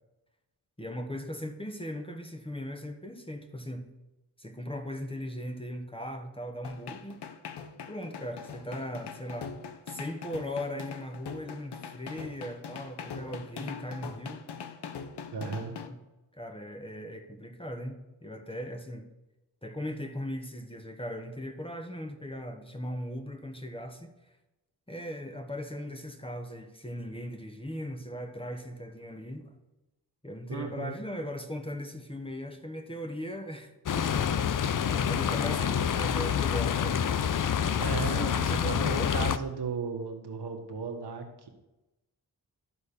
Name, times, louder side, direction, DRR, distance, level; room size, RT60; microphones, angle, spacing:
voice 1, 0.8-3.9 4.4-7.2 7.9-9.5 9.9-14.4 15.5-16.0 16.3-19.0 19.6-24.1 24.9-29.5 30.2-37.0 37.7-39.3, equal, 15° left, 6 dB, 1.4 m, -38 dB
sound 1, 6.6-15.9, left 6 dB, 75° left, 0.9 m, -42 dB
voice 2, 15.3-15.7 30.5-31.0 37.8-41.5, right 5 dB, 75° right, 4 dB, 1.5 m, -35 dB
sound 2, 33.9-39.4, left 8 dB, 50° left, 0.6 m, -27 dB
12.5 x 4.2 x 6.8 m, 1.0 s
cardioid pair, 45°, 40 cm